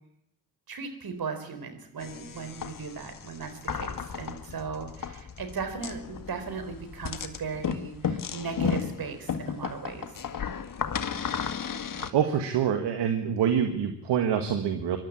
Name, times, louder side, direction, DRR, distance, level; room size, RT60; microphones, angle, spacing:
voice 1, 0.7-10.1, right 5 dB, 55° right, 7 dB, 4.4 m, -37 dB
sound 1, 2.0-12.1, left 7 dB, 50° left, 1.8 m, -34 dB
voice 2, 11.9-15.0, right 8 dB, 70° right, 6 dB, 1.8 m, -26 dB
24.5 x 12.0 x 8.6 m, 0.73 s
hypercardioid pair, 45°, 42 cm